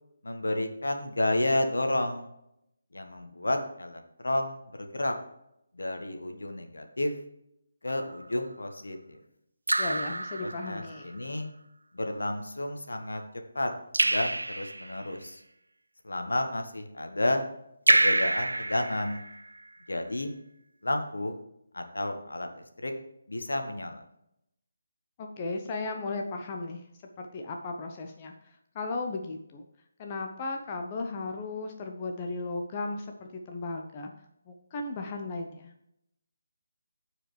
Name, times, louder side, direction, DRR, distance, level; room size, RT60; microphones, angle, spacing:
voice 1, 0.2-2.3 2.9-5.1 5.7-7.1 7.8-9.2 10.4-11.5 11.9-13.2 13.5-13.7 14.0-15.4 16.0-17.4 17.9-19.2 19.9-20.3 20.8-21.4 21.7-22.9 23.3-24.0, left 1 dB, 70° left, 5 dB, 1.4 m, -31 dB
Raindrop / Drip, 7.9-8.3 9.7-11.0 13.9-15.1 17.9-19.6, right 2 dB, 80° right, 0.4 m, -27 dB
voice 2, 9.8-11.2 25.2-26.8 27.2-28.3 28.7-29.6 30.0-34.1 34.5-35.7, left 3 dB, 25° left, 3 dB, 0.8 m, -35 dB
15.0 x 5.0 x 3.3 m, 0.79 s
figure-of-eight pair, 150°, 0 cm